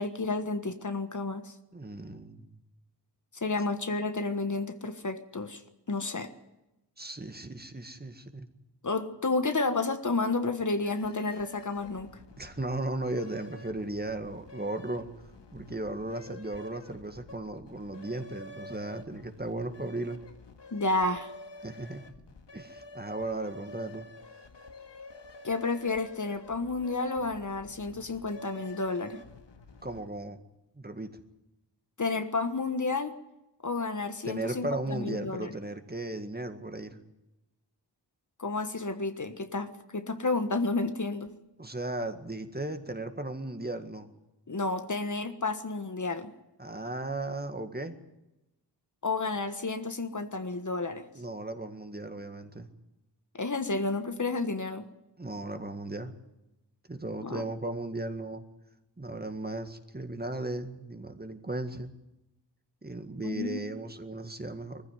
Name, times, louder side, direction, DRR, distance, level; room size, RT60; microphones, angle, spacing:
voice 1, 0.0-1.5 3.3-5.6 5.9-6.3 8.8-12.1 20.7-21.3 25.4-29.2 32.0-33.2 33.6-35.5 38.4-41.3 44.5-46.3 49.0-51.1 53.3-54.9 57.2-57.4 63.2-63.7, left 3 dB, 45° left, 9 dB, 1.4 m, -31 dB
voice 2, 1.7-2.5 7.0-8.5 12.4-15.1 15.5-20.2 21.6-22.0 22.5-24.1 29.8-30.4 30.8-31.2 34.2-37.0 41.6-44.1 46.6-48.0 51.2-52.7 55.2-56.1 56.9-58.4 59.0-61.9 62.8-64.8, right 2 dB, 25° right, 7 dB, 1.9 m, -36 dB
sound 1, 10.8-30.3, left 2 dB, 80° left, 1.9 m, -49 dB
21.0 x 15.0 x 9.5 m, 0.95 s
wide cardioid pair, 80°, 42 cm